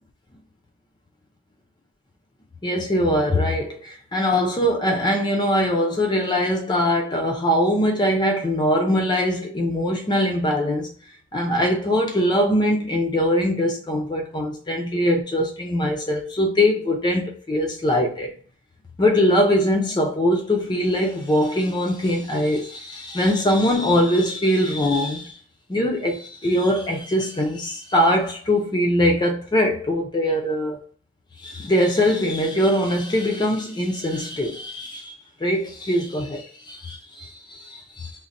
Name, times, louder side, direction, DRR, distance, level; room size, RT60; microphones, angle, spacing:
voice 1, 2.6-10.9 11.3-18.3 19.0-25.4 25.7-30.8 31.4-35.1 35.4-38.1, equal, 20° left, 0.4 m, -22 dB
2.5 x 2.1 x 4.0 m
head